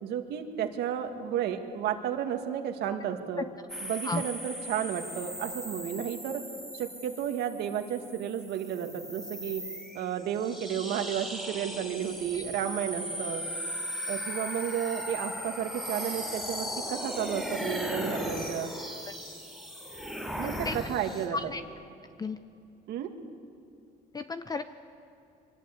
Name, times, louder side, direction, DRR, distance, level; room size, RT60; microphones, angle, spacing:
voice 1, 0.0-3.5 3.8-6.4 6.7-9.6 9.9-13.4 14.1-18.7 20.4-21.5 22.9-23.1, right 9 dB, 80° right, 5 dB, 2.1 m, -32 dB
sound 1, 3.7-21.3, equal, ahead, 4.8 m, -38 dB
voice 2, 20.4-20.7 21.3-21.6 22.2-22.4 24.1-24.6, left 3 dB, 20° left, 10 dB, 0.7 m, -33 dB
24.0 x 19.0 x 8.4 m, 2.6 s
cardioid pair, 110°, 17 cm